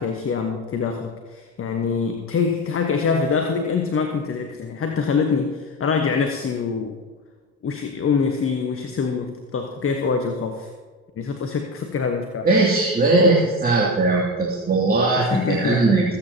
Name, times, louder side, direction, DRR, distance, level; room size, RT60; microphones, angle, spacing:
voice 1, 0.0-7.0 7.6-10.7 11.2-12.5 15.2-16.0, left 5 dB, 35° left, 5 dB, 1.2 m, -24 dB
voice 2, 12.4-16.0, right 3 dB, 25° right, -4 dB, 2.6 m, -19 dB
25.5 x 8.8 x 2.9 m, 1.5 s
figure-of-eight pair, 45°, 36 cm